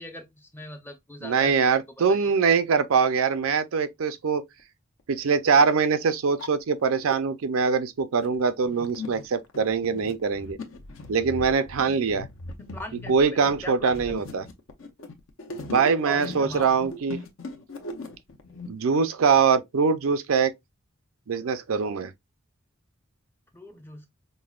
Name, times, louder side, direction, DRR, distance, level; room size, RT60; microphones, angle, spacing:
voice 1, 0.0-1.8 2.1-2.3 12.1-12.2 12.7-14.0 15.7-16.7 23.5-24.1, equal, 10° left, 0.5 m, -41 dB
voice 2, 1.2-4.4 5.1-10.6 11.1-12.3 13.1-14.4 15.7-17.2 18.7-20.5 21.3-22.1, right 5 dB, 80° right, 0.5 m, -23 dB
sound 1, 5.0-5.1 5.8-5.9 6.2-7.2 7.8-18.7, left 2 dB, 70° left, 0.7 m, -39 dB
5.3 x 2.1 x 2.3 m
head